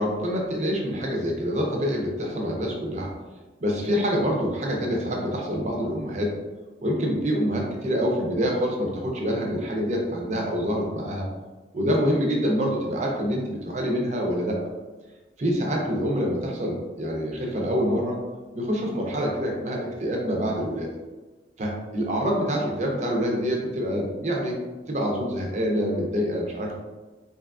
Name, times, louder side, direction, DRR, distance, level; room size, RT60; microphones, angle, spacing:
voice 1, 0.0-3.1 3.6-6.3 6.8-11.3 11.7-14.6 15.4-18.2 18.5-20.9 21.6-24.6 24.9-26.7, equal, 40° right, 0 dB, 0.5 m, -26 dB
2.9 x 2.3 x 2.3 m, 1.2 s
head